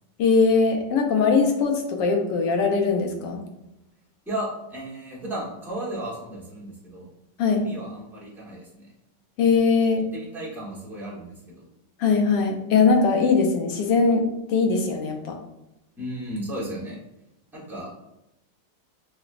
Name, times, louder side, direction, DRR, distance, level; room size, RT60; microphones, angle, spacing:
voice 1, 0.2-3.4 7.4-7.6 9.4-10.1 12.0-14.2 14.5-15.4, left 4 dB, 70° left, 3 dB, 1.1 m, -21 dB
voice 2, 4.3-7.1 7.5-8.9 10.1-11.7 16.0-17.0 17.5-17.9, right 1 dB, 5° right, -7 dB, 0.3 m, -34 dB
5.9 x 2.1 x 2.4 m, 0.91 s
omnidirectional pair, 2.2 m